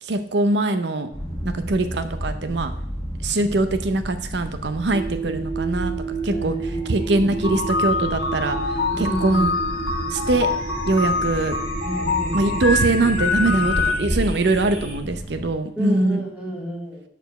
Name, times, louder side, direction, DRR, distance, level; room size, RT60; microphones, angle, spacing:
voice 1, 0.0-1.1 1.4-2.7 3.2-5.9 6.2-6.6 6.9-9.5 10.1-10.5 10.9-11.6 12.3-16.2, right 2 dB, 65° right, 10 dB, 0.7 m, -22 dB
sound 1, 1.1-15.5, equal, 15° left, 1.5 m, -32 dB
sound 2, 4.9-14.9, right 4 dB, 35° right, 2.7 m, -32 dB
voice 2, 6.3-6.9 8.9-9.4 11.8-12.4 15.8-17.0, equal, 5° right, -3 dB, 2.1 m, -30 dB
sound 3, 7.4-13.9, left 3 dB, 65° left, 1.1 m, -25 dB
6.8 x 5.1 x 6.5 m, 0.70 s
head